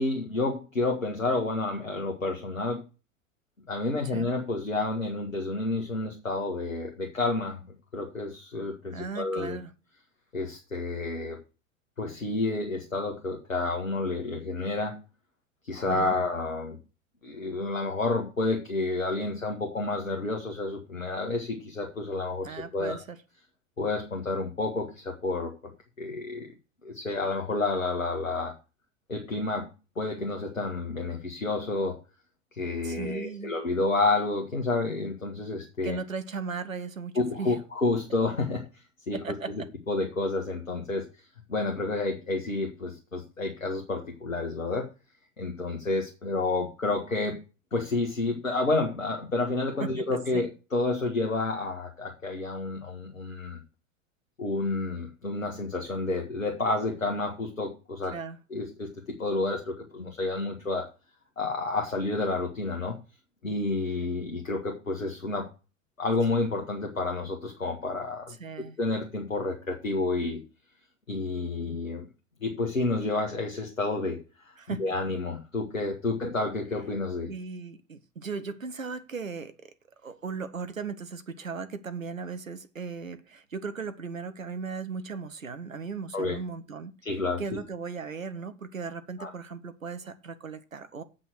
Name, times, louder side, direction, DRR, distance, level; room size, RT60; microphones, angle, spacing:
voice 1, 0.0-2.8 3.7-7.6 7.9-9.6 10.3-11.4 12.0-15.0 15.6-16.8 17.2-23.0 23.8-25.5 26.0-26.5 26.8-28.5 29.1-29.7 29.9-32.0 32.5-36.0 37.1-39.2 39.9-44.9 45.4-47.4 47.7-53.6 54.4-58.1 58.5-60.9 61.4-63.0 63.4-65.4 66.0-68.4 68.8-70.4 71.1-72.0 72.4-74.5 74.8-77.3 86.1-86.4 87.0-87.4 89.2-89.3, left 3 dB, 80° left, 1.7 m, -30 dB
voice 2, 8.9-9.7 15.9-16.2 22.4-23.2 32.8-33.5 35.8-37.6 39.1-39.7 49.8-50.1 50.3-50.5 58.1-58.4 68.4-68.8 74.6-74.9 77.3-79.7 80.0-86.9 87.4-91.0, right 5 dB, 85° right, 0.9 m, -37 dB
7.8 x 6.1 x 6.4 m
figure-of-eight pair, 85°, 39 cm